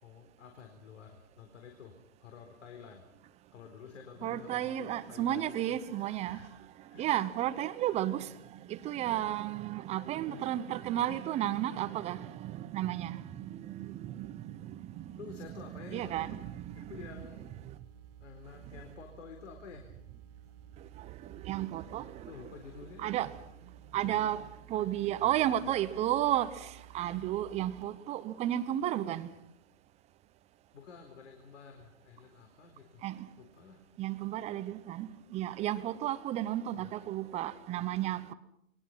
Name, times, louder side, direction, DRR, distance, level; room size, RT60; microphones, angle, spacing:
voice 1, 0.0-3.0 3.5-6.5 6.9-7.1 10.3-10.4 15.1-16.4 16.8-17.4 18.2-19.9 22.2-23.1 24.0-24.2 25.2-25.9 30.7-33.1 33.4-33.8 36.7-36.9, left 6 dB, 65° left, 4.3 m, -50 dB
voice 2, 4.2-6.4 7.0-8.3 8.6-16.9 21.0-22.5 23.0-23.4 23.9-29.3 33.0-33.3 34.0-38.3, right 12 dB, 15° right, 0.8 m, -33 dB
sound 1, 16.0-27.8, right 9 dB, 45° right, 1.5 m, -54 dB
30.0 x 21.5 x 5.7 m
hypercardioid pair, 135°, 40 cm